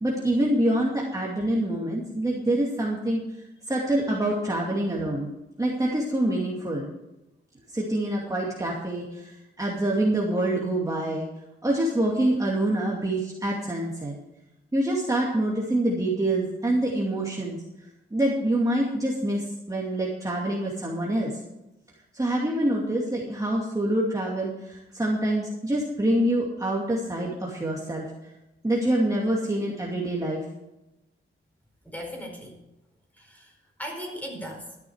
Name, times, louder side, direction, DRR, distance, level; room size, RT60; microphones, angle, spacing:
voice 1, 0.0-3.2 3.7-5.3 5.6-6.9 7.7-11.3 11.6-14.1 14.7-17.6 18.1-21.3 22.1-28.0 28.6-30.4, right 1 dB, 15° right, -3 dB, 2.4 m, -26 dB
voice 2, 31.8-32.5 33.1-34.8, equal, 5° left, 0 dB, 4.8 m, -38 dB
13.0 x 10.5 x 4.9 m, 0.94 s
wide cardioid pair, 100°, 21 cm